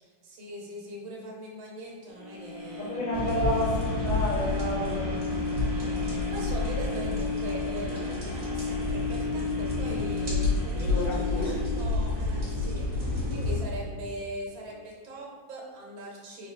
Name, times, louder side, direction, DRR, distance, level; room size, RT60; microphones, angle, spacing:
voice 1, 0.0-3.0 5.7-16.5, right 1 dB, 85° right, -2 dB, 1.7 m, -41 dB
sound 1, 2.1-14.2 14.7-14.8, left 4 dB, 65° right, 0.4 m, -34 dB
voice 2, 2.8-5.2 10.7-11.6, left 1 dB, 40° left, -6 dB, 0.6 m, -31 dB
sound 2, 3.1-13.6, left 2 dB, 40° right, 1.4 m, -30 dB
4.3 x 2.4 x 4.5 m, 1.5 s
omnidirectional pair, 2.1 m